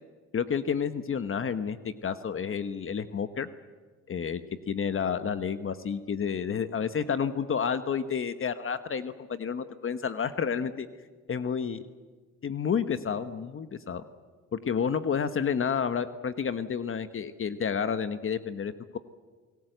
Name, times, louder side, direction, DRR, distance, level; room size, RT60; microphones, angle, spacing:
voice 1, 0.3-3.5 4.1-4.4 4.7-10.9 11.3-11.8 12.4-14.0 14.5-19.0, left 7 dB, 45° left, 11 dB, 1.2 m, -30 dB
29.0 x 19.0 x 8.0 m, 1.4 s
cardioid pair, 90°, 30 cm